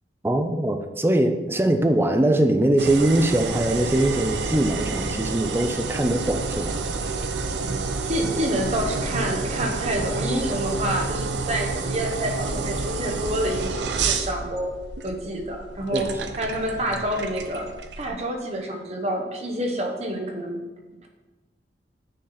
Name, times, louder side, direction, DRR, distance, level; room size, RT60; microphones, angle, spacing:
voice 1, 0.2-6.8 15.9-16.1, right 1 dB, 15° right, 7 dB, 0.5 m, -22 dB
sound 1, 2.8-18.1, right 4 dB, 85° right, 0.6 m, -29 dB
voice 2, 7.6-14.7 15.0-16.1 16.4-17.7 18.0-20.6, right 1 dB, 35° right, 2 dB, 0.8 m, -28 dB
6.4 x 4.2 x 5.7 m, 1.2 s
head